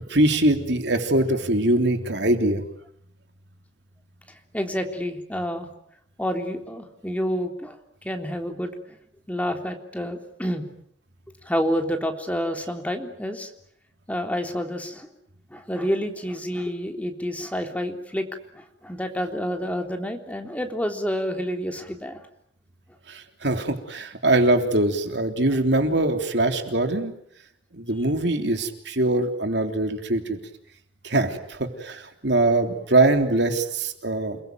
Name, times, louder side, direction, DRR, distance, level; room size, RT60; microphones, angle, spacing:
voice 1, 0.1-2.6 23.1-27.1 27.7-30.4 31.0-34.4, right 2 dB, 65° right, 5 dB, 3.4 m, -22 dB
voice 2, 4.5-5.7 6.2-7.8 8.0-9.0 9.3-10.6 11.5-13.5 14.1-15.1 15.5-18.3 18.5-22.2, equal, 10° left, 4 dB, 3.5 m, -28 dB
29.0 x 21.5 x 9.3 m, 0.71 s
head